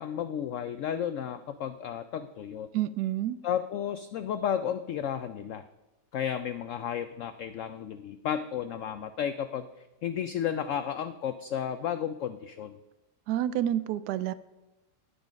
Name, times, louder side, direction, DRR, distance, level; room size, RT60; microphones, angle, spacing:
voice 1, 0.0-2.7 3.4-5.6 6.1-9.7 10.0-12.8, left 9 dB, 85° left, 11 dB, 0.6 m, -33 dB
voice 2, 2.7-3.4 13.3-14.3, right 12 dB, 75° right, 16 dB, 1.1 m, -29 dB
9.8 x 8.9 x 5.1 m, 1.1 s
omnidirectional pair, 1.9 m